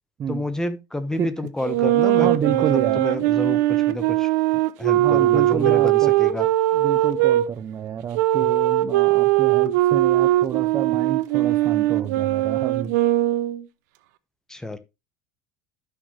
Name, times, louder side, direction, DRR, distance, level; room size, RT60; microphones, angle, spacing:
voice 1, 0.3-4.3 4.8-6.5 14.5-14.8, left 1 dB, 5° left, 1.1 m, -29 dB
sound 1, 1.6-7.5 8.2-13.6, right 15 dB, 80° right, 0.8 m, -20 dB
voice 2, 2.1-3.0 4.9-6.1 6.7-13.0, right 8 dB, 30° right, 0.5 m, -29 dB
11.5 x 6.4 x 3.1 m
supercardioid pair, 130°, 9 cm